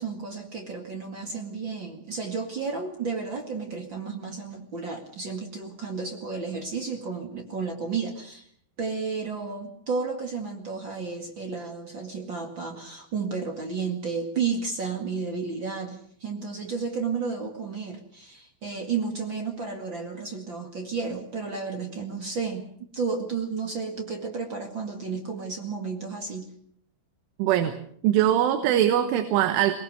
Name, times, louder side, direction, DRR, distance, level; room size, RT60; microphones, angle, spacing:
voice 1, 0.0-8.5 8.8-22.6 22.9-26.5, right 5 dB, 45° right, 3 dB, 1.5 m, -32 dB
voice 2, 27.4-27.8 28.0-29.8, right 11 dB, 80° right, 9 dB, 3.6 m, -22 dB
23.0 x 20.5 x 6.6 m, 0.62 s
omnidirectional pair, 5.7 m